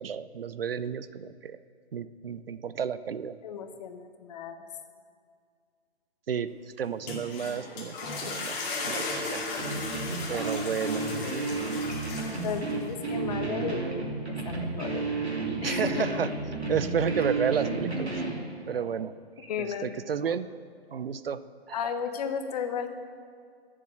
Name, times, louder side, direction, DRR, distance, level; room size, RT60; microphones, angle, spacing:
voice 1, 0.0-1.6 1.9-3.4 6.3-6.5 6.8-8.6 8.8-9.4 10.3-11.1 15.6-16.3 16.7-18.1 18.7-20.5 20.9-21.4 21.7-21.8, right 7 dB, 60° right, 14 dB, 0.7 m, -31 dB
voice 2, 3.4-4.6 8.0-8.3 10.4-10.5 12.4-13.8 14.3-15.2 15.6-16.2 16.9-17.2 19.4-19.9 21.7-22.9, left 7 dB, 40° left, 8 dB, 1.2 m, -34 dB
sound 1, 6.8-12.9, left 3 dB, 25° left, 2.5 m, -36 dB
sound 2, 9.6-18.4, right 3 dB, 80° right, 2.9 m, -32 dB
14.5 x 7.5 x 8.1 m, 2.2 s
figure-of-eight pair, 135°, 32 cm